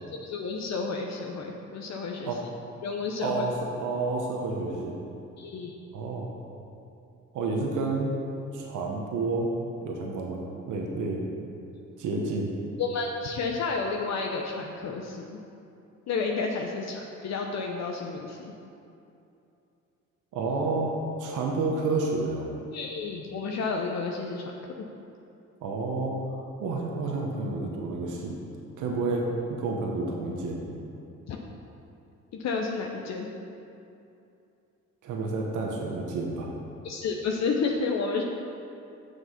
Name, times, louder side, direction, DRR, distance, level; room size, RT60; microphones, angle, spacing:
voice 1, 0.2-2.3 2.8-3.5 5.4-5.7 12.8-15.4 16.1-18.5 22.7-24.4 31.3-31.4 32.3-33.3 36.8-38.2, left 4 dB, 60° left, 1 dB, 0.8 m, -31 dB
voice 2, 3.2-3.5 3.8-4.9 5.9-6.3 7.3-8.1 8.5-9.5 9.8-11.2 12.0-12.5 20.3-20.9 21.2-22.5 25.6-28.4 28.8-30.6 35.0-36.5, right 3 dB, 80° right, -1 dB, 1.2 m, -30 dB
7.2 x 6.7 x 5.7 m, 2.7 s
cardioid pair, 90°, 30 cm